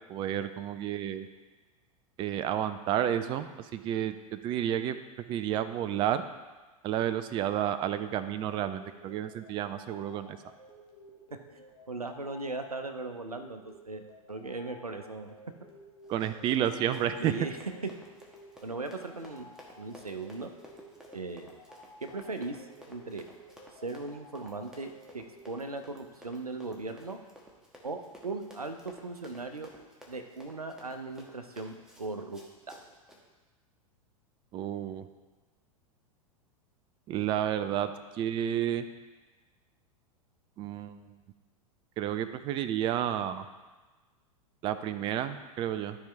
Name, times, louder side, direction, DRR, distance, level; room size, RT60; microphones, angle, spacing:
voice 1, 0.1-1.3 2.2-5.0 5.3-6.2 6.8-10.4 16.1-17.3 34.5-35.1 37.1-38.9 40.6-41.0 42.0-43.5 44.6-46.0, right 10 dB, 25° right, 11 dB, 0.4 m, -31 dB
sound 1, 7.6-25.4, left 1 dB, 30° left, 1.7 m, -55 dB
voice 2, 11.5-15.3 17.2-17.6 17.8-17.9 18.6-20.5 21.1-21.6 22.0-23.2 23.8-27.2 27.8-29.7 30.1-32.4 32.7-32.8, right 3 dB, 90° right, 7 dB, 0.7 m, -38 dB
Run, 16.0-33.2, equal, 5° right, 1.4 m, -54 dB
13.0 x 4.8 x 3.3 m, 1.3 s
figure-of-eight pair, 95°, 18 cm